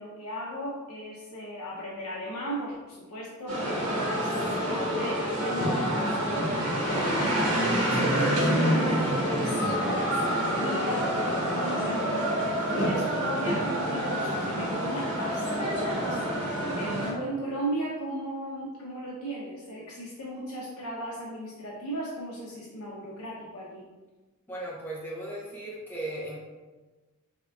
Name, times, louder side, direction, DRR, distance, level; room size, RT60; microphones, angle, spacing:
voice 1, 0.0-4.4 4.7-23.8, equal, 85° left, -5 dB, 0.7 m, -37 dB
sound 1, 3.5-17.1, equal, 90° right, 1.2 m, -27 dB
voice 2, 24.5-26.4, right 1 dB, 10° left, -5 dB, 0.7 m, -36 dB
3.6 x 3.5 x 2.3 m, 1.2 s
head